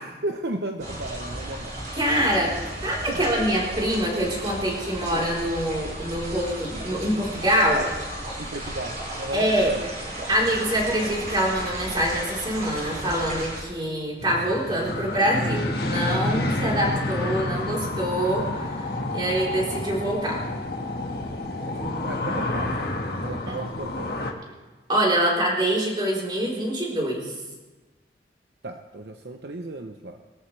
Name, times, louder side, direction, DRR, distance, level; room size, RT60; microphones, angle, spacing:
voice 1, 0.0-1.7 3.1-3.3 8.4-9.9 21.8-22.8 23.2-24.1 28.6-30.2, right 2 dB, 70° right, 5 dB, 0.8 m, -34 dB
sound 1, 0.8-13.6, right 1 dB, 45° right, 6.1 m, -34 dB
voice 2, 2.0-2.5 2.8-7.9 9.3-9.7 10.3-18.8 19.1-20.4 23.5-23.6 24.9-27.3, equal, 25° right, -3 dB, 4.0 m, -25 dB
sound 2, 14.2-24.3, left 2 dB, 60° left, 1.6 m, -29 dB
23.0 x 13.0 x 3.3 m, 1.2 s
head